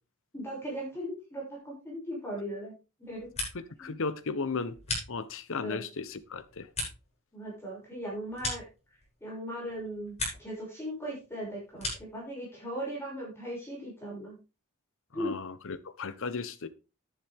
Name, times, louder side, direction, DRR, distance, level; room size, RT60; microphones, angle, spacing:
voice 1, 0.3-2.7 3.0-3.3 3.8-3.9 5.6-5.9 7.3-8.7 9.2-14.4 15.1-15.3, equal, 10° left, 6.5 m, -38 dB
sound 1, 3.0-3.9 4.2-5.6 6.0-9.3 9.7-10.6 10.9-12.2, left 2 dB, 30° left, 7.0 m, -39 dB
voice 2, 3.5-4.8 5.1-6.7 15.1-16.7, left 4 dB, 60° left, 0.9 m, -35 dB
10.5 x 10.0 x 3.6 m
head